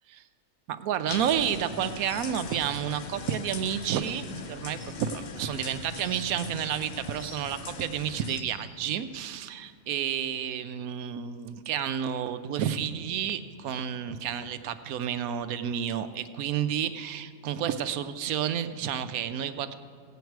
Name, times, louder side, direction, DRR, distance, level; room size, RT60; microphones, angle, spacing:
voice 1, 0.7-19.8, right 9 dB, 80° right, 10 dB, 1.1 m, -30 dB
sound 1, 1.1-8.4, left 5 dB, 75° left, 0.4 m, -41 dB
sound 2, 2.1-2.6 3.7-3.8 4.0-4.1 4.7-4.8 5.6-6.2 6.9-7.5 8.0-8.7 9.7-9.8, left 1 dB, 45° left, 2.9 m, -48 dB
16.5 x 8.2 x 4.6 m, 2.2 s
omnidirectional pair, 1.6 m